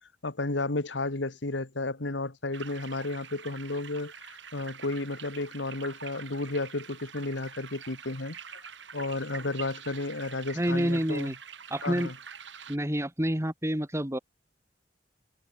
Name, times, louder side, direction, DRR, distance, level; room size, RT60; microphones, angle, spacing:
voice 1, 0.2-8.7 8.9-11.3 11.8-12.1, left 2 dB, 75° left, 1.6 m, -33 dB
sound 1, 2.5-12.8, right 7 dB, 80° right, 7.7 m, -46 dB
voice 2, 10.6-11.3 11.7-12.1 12.7-14.2, equal, 15° right, 2.1 m, -28 dB
head